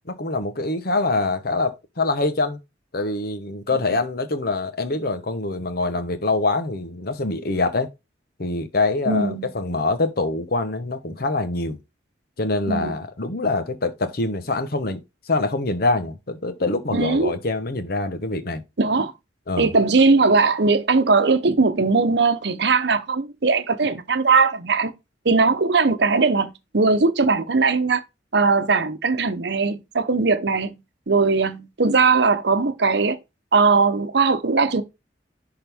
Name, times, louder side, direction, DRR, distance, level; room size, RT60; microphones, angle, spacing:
voice 1, 0.0-2.6 2.9-7.9 8.4-11.8 12.4-15.0 15.3-18.6 19.5-19.7, left 3 dB, 55° left, 1.0 m, -24 dB
voice 2, 9.1-9.5 12.7-12.9 16.9-17.4 18.8-19.1 19.6-24.9 25.2-28.0 28.3-30.8 31.1-33.2 33.5-34.8, right 4 dB, 65° right, 0.8 m, -19 dB
10.5 x 3.9 x 3.6 m
head